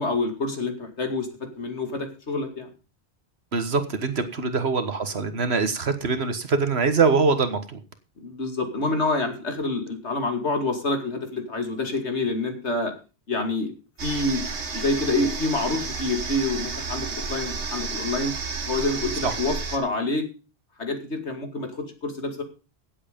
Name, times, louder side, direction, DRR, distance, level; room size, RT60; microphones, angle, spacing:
voice 1, 0.0-2.7 4.4-4.6 8.2-12.9 13.3-13.7 14.0-14.4 14.7-18.3 18.6-20.3 20.8-22.4, left 2 dB, 80° left, 6 dB, 2.8 m, -27 dB
voice 2, 3.5-7.8 19.2-19.3, right 4 dB, 70° right, 10 dB, 1.7 m, -23 dB
Old Toilet Chain pull Flush, 14.0-19.8, right 4 dB, 85° right, 1.8 m, -31 dB
16.0 x 8.1 x 5.2 m, 0.33 s
omnidirectional pair, 1.1 m